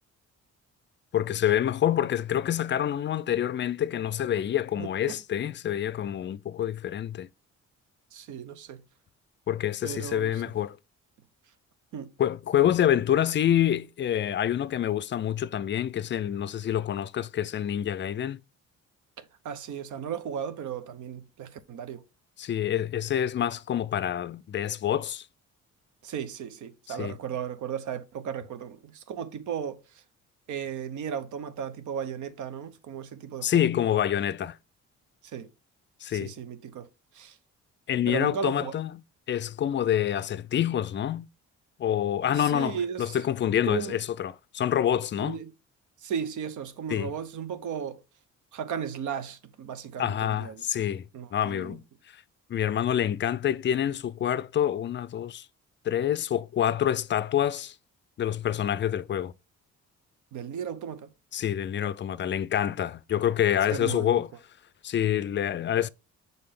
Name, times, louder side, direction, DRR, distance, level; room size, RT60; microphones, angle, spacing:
voice 1, 1.1-7.3 9.5-10.8 12.2-18.4 22.4-25.3 27.0-27.2 33.4-34.6 36.0-36.3 37.9-38.9 39.3-41.3 41.8-45.4 46.9-47.1 50.0-51.8 52.1-52.2 52.5-55.5 55.8-57.7 58.2-59.3 61.3-64.3 64.8-65.9, left 10 dB, 40° left, 0.4 m, -27 dB
voice 2, 4.8-5.2 8.1-8.8 9.8-10.5 11.9-12.1 19.2-22.0 26.0-30.0 30.5-33.7 35.2-35.5 36.1-36.9 37.1-37.4 38.1-38.8 42.3-43.2 43.6-44.0 45.2-45.5 46.0-48.0 48.5-50.6 51.1-51.8 60.3-61.1 63.7-64.2, right 8 dB, 75° right, 0.9 m, -35 dB
6.7 x 4.0 x 3.6 m
cardioid pair, 90°, 30 cm